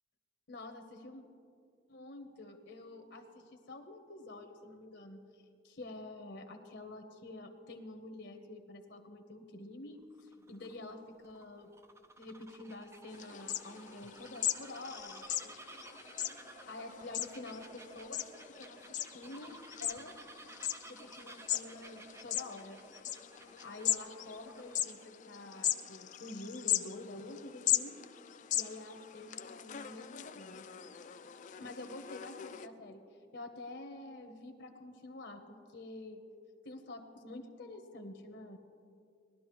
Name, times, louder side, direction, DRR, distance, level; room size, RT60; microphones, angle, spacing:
voice 1, 0.5-1.2 1.9-11.7 12.2-15.6 16.7-18.2 18.6-20.2 20.9-22.8 23.6-28.0 28.5-30.7 31.6-33.0 33.3-36.2 36.6-38.6, left 2 dB, 65° left, 6 dB, 1.0 m, -48 dB
Bird vocalization bird call bird song, 10.0-25.1, right 2 dB, 15° right, 0.5 m, -55 dB
sound 1, 13.1-32.7, left 12 dB, 45° left, 0.4 m, -39 dB
19.0 x 12.0 x 3.1 m, 2.4 s
head